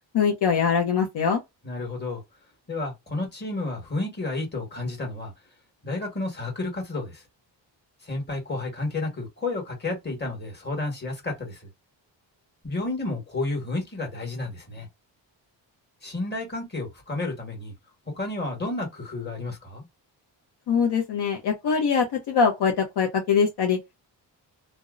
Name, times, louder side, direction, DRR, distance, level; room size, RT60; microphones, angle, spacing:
voice 1, 0.1-1.4 20.7-23.8, left 6 dB, 60° left, 0.7 m, -23 dB
voice 2, 1.6-2.2 2.7-5.3 5.8-7.2 8.0-11.7 12.6-14.9 16.0-17.7 18.1-19.8, left 2 dB, 20° left, 1.3 m, -31 dB
2.6 x 2.0 x 2.3 m
cardioid pair, 110°, 45 cm